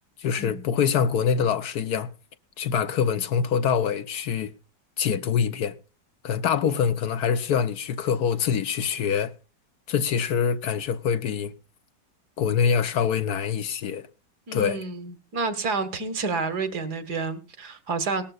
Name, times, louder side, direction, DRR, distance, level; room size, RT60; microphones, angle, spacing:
voice 1, 0.2-2.1 2.6-4.5 5.0-5.7 6.2-9.3 9.9-11.5 12.4-14.1 14.5-14.8, left 7 dB, 70° left, 1.2 m, -24 dB
voice 2, 14.5-18.2, right 4 dB, 65° right, 2.0 m, -29 dB
19.0 x 13.0 x 2.3 m
omnidirectional pair, 1.9 m